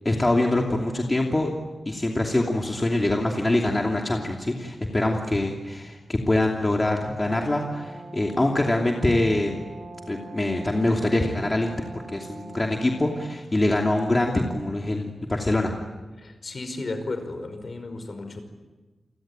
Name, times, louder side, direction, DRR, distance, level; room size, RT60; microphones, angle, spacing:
voice 1, 0.0-1.5 1.9-9.6 10.1-15.7, left 1 dB, 25° left, 1 dB, 2.8 m, -24 dB
Brass instrument, 7.1-13.4, right 3 dB, 80° right, 5.8 m, -43 dB
voice 2, 16.2-18.4, left 2 dB, 50° left, 8 dB, 5.3 m, -34 dB
29.5 x 22.5 x 9.0 m, 1.2 s
wide cardioid pair, 100°, 0 cm